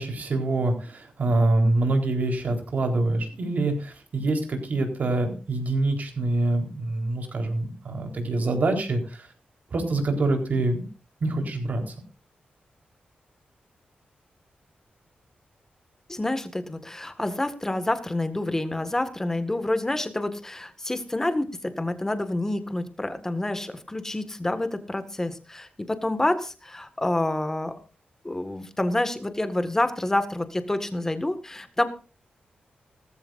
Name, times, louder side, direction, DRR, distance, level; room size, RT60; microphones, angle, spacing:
voice 1, 0.0-9.3 9.7-10.9 11.2-11.9, right 2 dB, 55° right, 4 dB, 4.1 m, -25 dB
voice 2, 16.1-27.8 28.2-31.8, left 1 dB, 15° left, 9 dB, 1.8 m, -28 dB
18.0 x 14.5 x 2.6 m, 0.35 s
wide cardioid pair, 115°, 3 cm